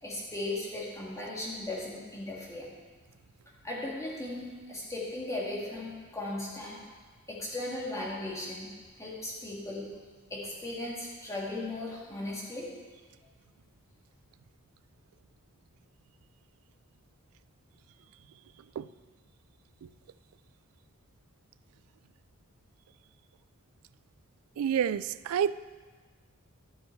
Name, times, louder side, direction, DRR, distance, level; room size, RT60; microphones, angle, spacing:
voice 1, 0.0-2.7 3.6-6.8 7.3-8.7 9.0-9.9 10.3-12.7, left 2 dB, 15° left, -5 dB, 2.1 m, -37 dB
voice 2, 24.6-25.5, right 8 dB, 70° right, 17 dB, 0.3 m, -29 dB
12.0 x 6.4 x 4.6 m, 1.4 s
head